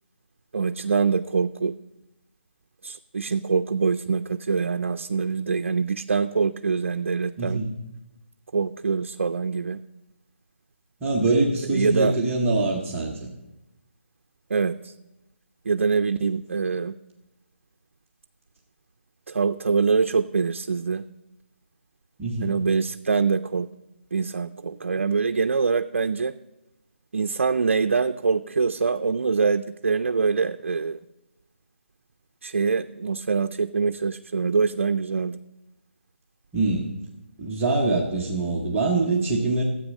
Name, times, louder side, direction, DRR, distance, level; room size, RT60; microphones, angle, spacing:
voice 1, 0.5-1.7 2.8-7.6 8.5-9.8 11.7-12.2 14.5-14.9 15.7-16.9 19.3-21.0 22.4-23.7 24.1-26.3 27.1-31.0 32.4-35.4, right 5 dB, 70° right, 9 dB, 0.5 m, -24 dB
voice 2, 7.4-7.7 11.0-13.3 22.2-22.5 36.5-36.9 37.4-39.6, right 2 dB, 10° right, -5 dB, 0.8 m, -24 dB
13.0 x 8.3 x 6.3 m, 0.99 s
hypercardioid pair, 175°, 7 cm